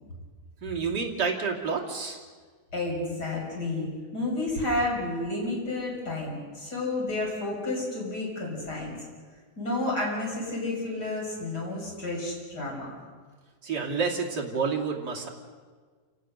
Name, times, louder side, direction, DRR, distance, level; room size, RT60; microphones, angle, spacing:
voice 1, 0.6-2.2 13.6-15.3, right 5 dB, 30° right, -2 dB, 2.9 m, -29 dB
voice 2, 2.7-9.0 9.6-12.9, left 2 dB, 25° left, -2 dB, 6.8 m, -31 dB
28.5 x 18.0 x 6.6 m, 1.5 s
omnidirectional pair, 4.1 m